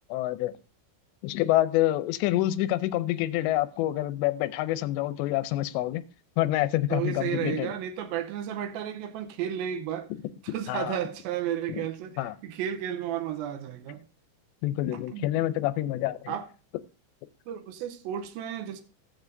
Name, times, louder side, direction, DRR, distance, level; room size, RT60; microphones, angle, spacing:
voice 1, 0.1-0.5 1.2-6.0 6.4-7.7 10.7-11.0 11.8-11.9 12.2-12.3 14.6-16.3, left 15 dB, 85° left, 2.7 m, -27 dB
voice 2, 6.9-10.1 10.4-14.0 14.9-15.4 16.3-16.5 17.5-18.8, right 10 dB, 80° right, 2.1 m, -33 dB
16.0 x 7.2 x 2.6 m
omnidirectional pair, 5.1 m